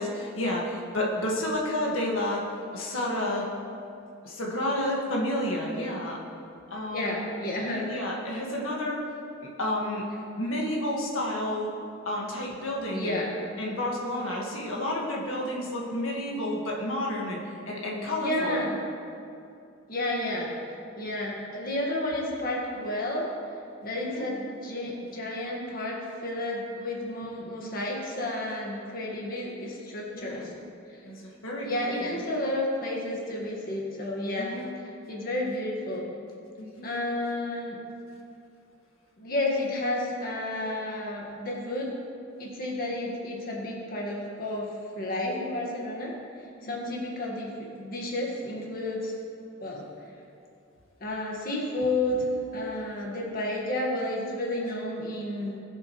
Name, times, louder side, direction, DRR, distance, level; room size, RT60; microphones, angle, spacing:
voice 1, 0.0-2.5 2.7-3.5 4.2-6.2 6.7-7.2 7.7-9.0 9.6-10.0 10.4-11.7 12.1-13.2 13.6-17.4 17.7-18.7 23.9-24.3 30.1-30.5 31.0-32.2 34.4-34.7 36.6-36.9 46.8-46.9 49.6-49.7 53.0-53.1, left 1 dB, 80° left, -3 dB, 1.9 m, -30 dB
voice 2, 6.9-7.8 12.9-13.4 18.2-18.8 19.9-23.3 23.8-30.5 30.9-31.0 31.6-34.6 34.8-36.1 36.8-37.8 39.2-41.9 42.4-46.2 46.6-49.1 49.6-49.9 51.0-52.3 52.5-55.6, left 1 dB, 45° left, -3 dB, 1.8 m, -31 dB
20.5 x 7.6 x 3.2 m, 2.5 s
head